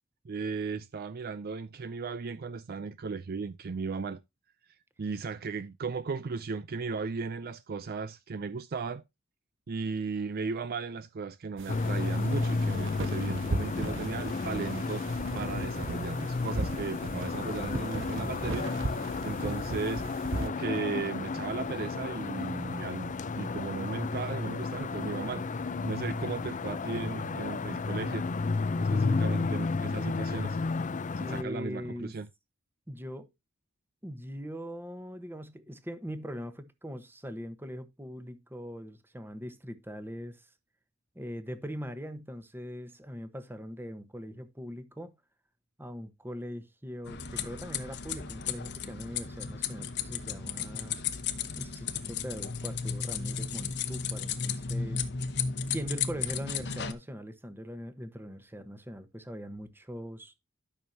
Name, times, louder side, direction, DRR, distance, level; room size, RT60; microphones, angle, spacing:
voice 1, 0.2-4.2 5.0-9.0 9.7-15.1 15.3-20.1 20.3-28.3 28.8-30.6 31.2-32.3, right 4 dB, 45° right, 0.4 m, -36 dB
sound 1, 11.6-20.5, right 2 dB, 65° right, 1.0 m, -37 dB
sound 2, 11.7-31.4, left 3 dB, 35° left, 0.5 m, -32 dB
voice 2, 31.2-32.1 32.9-33.3 34.0-40.5 41.1-45.1 45.8-51.0 51.5-55.0 55.7-60.3, equal, 10° right, 1.1 m, -41 dB
sound 3, 47.0-56.9, left 6 dB, 55° left, 1.1 m, -34 dB
12.5 x 6.3 x 2.7 m
head